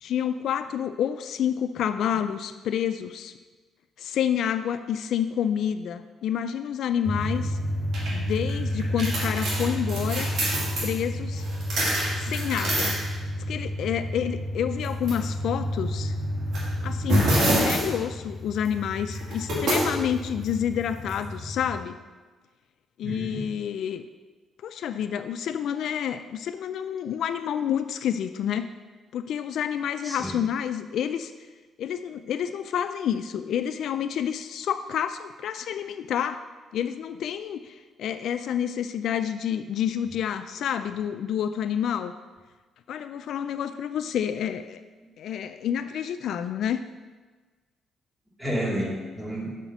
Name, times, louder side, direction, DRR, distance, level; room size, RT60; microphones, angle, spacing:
voice 1, 0.0-3.3 4.0-7.6 8.1-10.3 10.8-11.5 12.2-12.9 13.5-16.1 16.8-17.3 17.6-22.0 23.0-24.0 24.6-28.7 29.1-31.3 31.8-36.4 36.7-42.1 42.9-44.8 45.2-46.8, left 9 dB, 75° left, 10 dB, 0.3 m, -29 dB
sound 1, 7.1-21.8, equal, 70° right, 2.5 m, -28 dB
voice 2, 23.0-23.5 30.0-30.4 48.4-49.5, equal, 15° right, -5 dB, 2.7 m, -31 dB
5.8 x 5.7 x 6.1 m, 1.4 s
cardioid pair, 90°, 0 cm